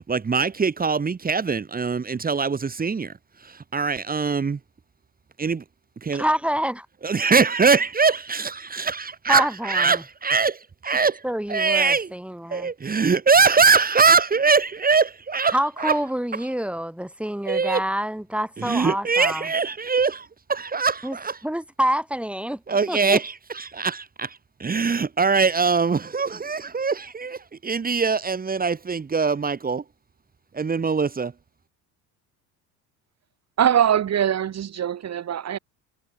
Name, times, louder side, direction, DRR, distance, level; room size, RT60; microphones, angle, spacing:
voice 1, 0.0-3.1 3.4-4.6 5.4-5.6 6.0-6.2 7.0-11.2 11.5-12.1 12.5-15.9 17.5-17.8 18.6-20.2 20.5-21.4 22.7-29.8 30.5-31.3, right 5 dB, 25° right, 2.8 m, -22 dB
voice 2, 6.1-6.9 9.3-10.0 11.2-12.7 15.5-19.5 21.0-21.2 21.4-22.6 22.9-23.2, equal, 5° right, 6.3 m, -27 dB
voice 3, 33.6-35.6, right 9 dB, 45° right, 5.2 m, -22 dB
supercardioid pair, 105°, 37 cm